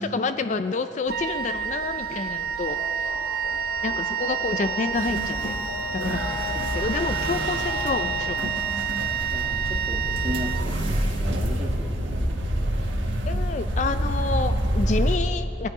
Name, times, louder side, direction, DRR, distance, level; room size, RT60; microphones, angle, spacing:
voice 1, 0.0-3.1 3.8-5.5 5.9-8.6 13.3-15.7, left 4 dB, 40° left, 10 dB, 0.3 m, -29 dB
Wind instrument woodwind instrument, 1.1-11.2, right 7 dB, 50° right, 0.6 m, -29 dB
sound 1, 2.5-8.4, left 2 dB, 70° left, 2.8 m, -37 dB
sound 2, 4.9-15.2, right 1 dB, 80° right, 1.5 m, -27 dB
voice 2, 9.3-12.9, equal, 30° right, 0 dB, 1.5 m, -36 dB
19.0 x 9.8 x 4.8 m, 2.8 s
head